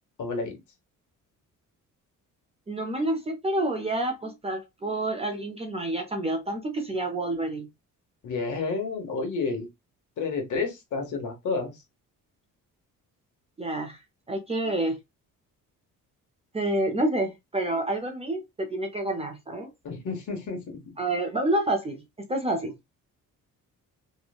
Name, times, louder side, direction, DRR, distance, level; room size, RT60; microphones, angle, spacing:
voice 1, 0.2-0.6 8.2-9.7 10.2-11.8 19.8-20.9, left 4 dB, 60° left, 1.1 m, -30 dB
voice 2, 2.7-7.7 13.6-14.0 14.3-15.0 16.5-19.7 21.0-22.0 22.3-22.7, right 1 dB, 20° right, 0.5 m, -28 dB
3.0 x 2.1 x 2.3 m
cardioid pair, 145°, 33 cm